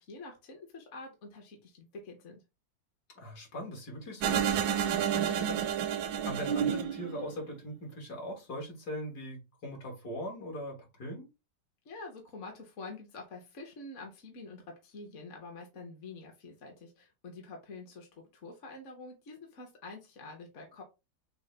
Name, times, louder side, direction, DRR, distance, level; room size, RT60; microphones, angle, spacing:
voice 1, 0.0-2.4 11.8-20.8, left 3 dB, 50° left, 1.2 m, -47 dB
voice 2, 3.2-5.7 5.9-11.3, equal, 65° left, 2.2 m, -41 dB
sound 1, 4.2-7.6, right 9 dB, 80° right, 1.2 m, -30 dB
6.5 x 2.2 x 3.3 m
omnidirectional pair, 1.9 m